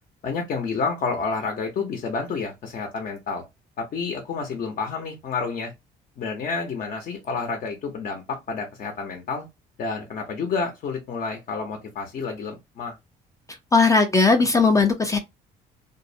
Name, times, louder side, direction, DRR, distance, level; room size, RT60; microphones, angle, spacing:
voice 1, 0.2-3.4 3.8-5.7 6.2-9.5 9.8-13.0, left 4 dB, 50° left, 0.7 m, -29 dB
voice 2, 13.7-15.2, left 4 dB, 20° left, 0.4 m, -18 dB
2.5 x 2.0 x 2.6 m
cardioid pair, 110°, 17 cm